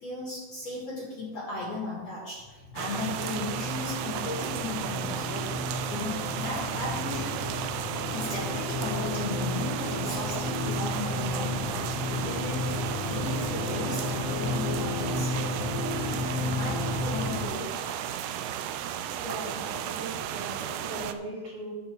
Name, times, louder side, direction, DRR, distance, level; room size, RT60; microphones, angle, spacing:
voice 1, 0.0-7.4 8.0-15.6 15.9-16.3 16.6-18.1, left 2 dB, 50° left, -4 dB, 2.2 m, -36 dB
sound 1, 2.4-17.4, left 2 dB, 80° left, 4.1 m, -33 dB
sound 2, 2.8-21.1, right 10 dB, 90° right, 2.8 m, -34 dB
voice 2, 19.1-21.7, right 1 dB, 65° right, -6 dB, 4.7 m, -39 dB
10.5 x 4.5 x 8.0 m, 1.3 s
omnidirectional pair, 4.9 m